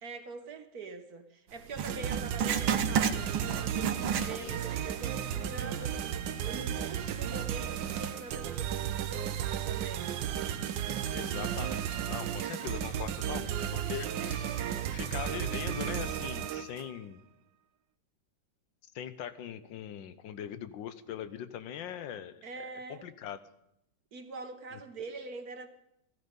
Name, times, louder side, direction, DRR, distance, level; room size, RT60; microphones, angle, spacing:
voice 1, 0.0-10.2 13.9-14.0 22.4-23.0 24.1-25.7, right 3 dB, 55° right, 1.4 m, -44 dB
Writing, 1.7-4.8 5.1-5.2 5.9-6.0, right 7 dB, 90° right, 1.7 m, -31 dB
sound 1, 1.9-16.9, right 10 dB, 75° right, 1.4 m, -34 dB
sound 2, 3.0-16.2, equal, 55° left, 6.7 m, -54 dB
voice 2, 4.1-4.6 11.1-14.5 14.9-17.2 18.9-23.4 24.7-24.8, left 9 dB, 75° left, 1.5 m, -41 dB
15.0 x 14.0 x 5.3 m
omnidirectional pair, 2.1 m